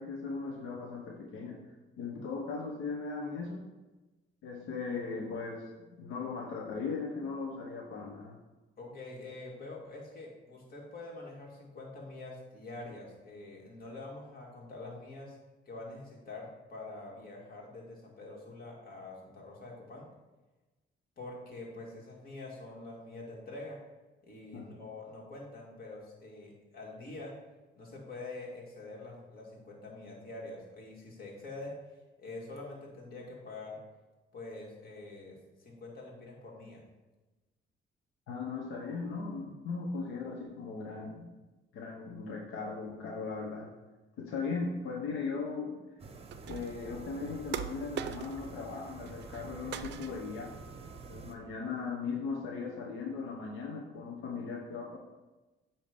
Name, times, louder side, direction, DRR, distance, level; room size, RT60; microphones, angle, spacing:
voice 1, 0.0-1.6 2.0-3.7 4.4-8.4 24.5-24.6 38.3-41.3 41.7-43.7 44.2-45.8 46.5-50.5 51.1-55.0, left 4 dB, 90° left, -1 dB, 0.9 m, -38 dB
voice 2, 8.8-15.4 15.7-20.1 21.2-23.8 24.2-27.4 27.8-31.8 32.2-33.8 34.3-36.8, left 2 dB, 50° left, -2 dB, 2.1 m, -45 dB
sound 1, 46.0-51.4, right 4 dB, 30° right, 0.8 m, -48 dB
sound 2, 46.3-46.9 47.5-48.6 48.9-49.4 49.7-50.4, right 10 dB, 65° right, 0.4 m, -41 dB
8.4 x 2.9 x 5.1 m, 1.1 s
cardioid pair, 90°, 20 cm